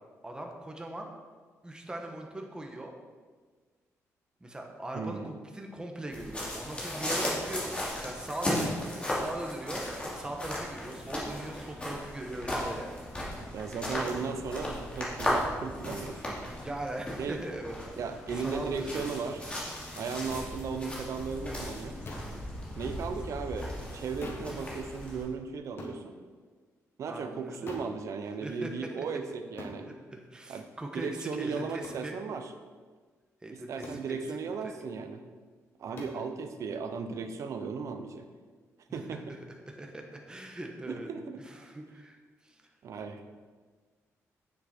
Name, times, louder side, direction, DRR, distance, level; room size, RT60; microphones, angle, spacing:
voice 1, 0.2-1.1 1.6-2.9 4.4-9.8 10.1-12.9 16.6-19.1 27.1-27.7 28.4-28.7 29.9-32.2 33.4-34.2 34.6-34.7 35.9-36.2 38.9-39.0 39.8-41.1 41.4-42.2 42.4-42.6, right 1 dB, 15° right, 2 dB, 1.3 m, -40 dB
voice 2, 4.9-5.3 13.4-16.4 17.2-17.4 18.0-19.4 19.9-22.0 22.8-26.2 27.0-29.9 30.5-30.7 30.9-32.5 33.5-35.2 35.8-38.3 38.9-39.4 40.9-41.4 42.8-43.2, right 5 dB, 65° right, 7 dB, 0.9 m, -36 dB
sound 1, 6.1-25.2, left 1 dB, 20° left, 2.8 m, -36 dB
sound 2, 20.3-20.5 22.0-22.4 24.2-24.6 25.8-26.0 27.7-28.0 29.6-29.8 31.8-32.1 33.8-34.1 36.0-36.2, left 2 dB, 45° left, 1.7 m, -43 dB
9.1 x 7.3 x 4.6 m, 1.5 s
cardioid pair, 115°, 6 cm